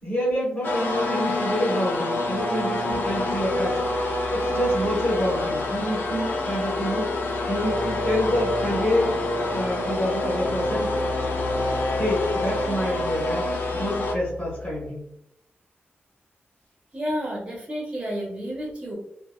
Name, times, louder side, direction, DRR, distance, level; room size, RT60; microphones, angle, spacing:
voice 1, 0.0-3.8 4.3-7.1 7.5-9.2 9.5-11.0 12.0-13.5 13.7-15.0, equal, 35° left, -7 dB, 1.0 m, -27 dB
sound 1, 0.6-14.1, left 2 dB, 55° left, 0.4 m, -27 dB
sound 2, 2.9-14.9, left 4 dB, 90° right, 0.6 m, -36 dB
voice 2, 16.9-19.0, equal, 25° right, -3 dB, 0.5 m, -30 dB
2.8 x 2.4 x 2.2 m, 0.75 s
wide cardioid pair, 145°, 4 cm